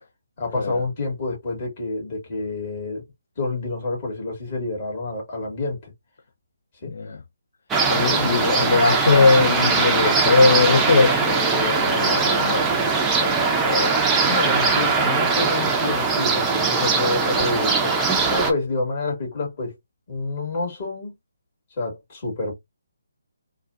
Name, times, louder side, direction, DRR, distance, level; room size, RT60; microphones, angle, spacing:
voice 1, 0.4-3.1 3.4-5.9 6.8-6.9 14.2-18.0 18.3-19.7 20.1-21.1 21.8-22.5, left 2 dB, 35° left, 2.2 m, -28 dB
voice 2, 6.8-7.2 7.9-14.0, left 3 dB, 60° left, 0.6 m, -21 dB
sound 1, 7.7-18.5, right 4 dB, 10° right, 0.7 m, -21 dB
3.9 x 2.4 x 2.5 m
figure-of-eight pair, 150°, 0 cm